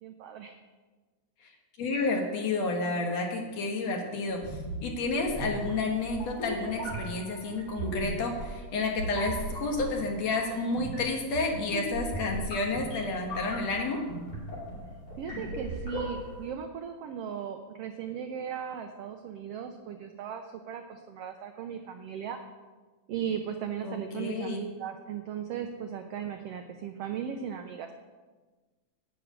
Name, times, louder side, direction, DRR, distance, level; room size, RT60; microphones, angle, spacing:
voice 1, 0.0-0.6 15.2-22.4 23.1-27.9, right 8 dB, 80° right, 6 dB, 1.3 m, -37 dB
voice 2, 1.8-14.0 23.8-24.6, left 3 dB, 60° left, 2 dB, 2.4 m, -30 dB
sound 1, 4.3-16.5, right 1 dB, 40° left, 4.7 m, -37 dB
10.0 x 6.1 x 8.8 m, 1.3 s
omnidirectional pair, 3.6 m